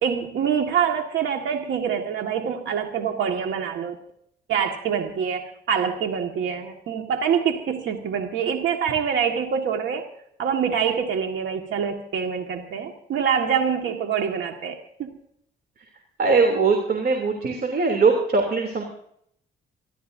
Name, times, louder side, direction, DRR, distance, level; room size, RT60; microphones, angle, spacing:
voice 1, 0.0-4.0 4.5-10.0 10.4-15.1, right 7 dB, 75° right, 3 dB, 1.8 m, -25 dB
voice 2, 16.2-18.8, right 4 dB, 50° right, 3 dB, 3.2 m, -21 dB
28.5 x 12.5 x 2.7 m, 0.70 s
cardioid pair, 90°, 20 cm